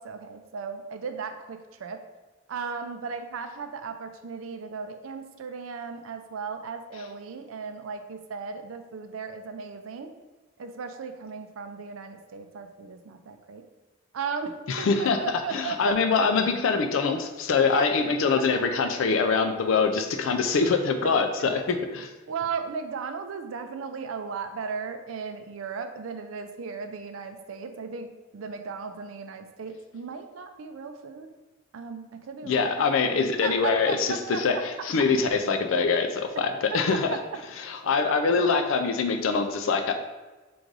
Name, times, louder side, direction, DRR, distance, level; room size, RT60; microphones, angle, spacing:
voice 1, 0.0-2.0 2.5-10.1 10.6-13.6 14.1-14.5 14.8-15.9 17.7-17.9 21.4-21.5 22.3-31.3 31.7-32.7 33.4-34.6 36.7-37.2 37.8-37.9, right 5 dB, 85° right, 7 dB, 0.4 m, -36 dB
voice 2, 14.7-22.1 32.4-37.2 37.6-39.9, left 4 dB, 75° left, 5 dB, 0.4 m, -24 dB
3.9 x 2.6 x 4.6 m, 1.2 s
head